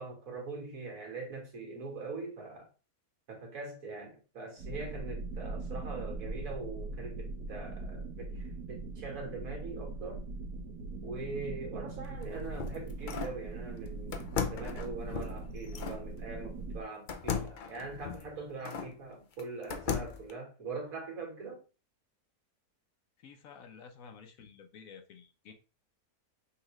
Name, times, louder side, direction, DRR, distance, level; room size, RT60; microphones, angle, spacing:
voice 1, 0.0-2.7 3.3-10.3 11.0-14.2 14.5-21.6, right 3 dB, 65° right, 1.9 m, -42 dB
sound 1, 4.6-16.8, right 2 dB, 85° right, 1.8 m, -41 dB
sound 2, 12.0-13.4 14.1-16.0 17.1-18.9 19.4-20.3, left 6 dB, 85° left, 0.4 m, -37 dB
voice 2, 23.2-25.5, left 6 dB, 70° left, 1.1 m, -52 dB
5.6 x 2.8 x 3.0 m
omnidirectional pair, 1.6 m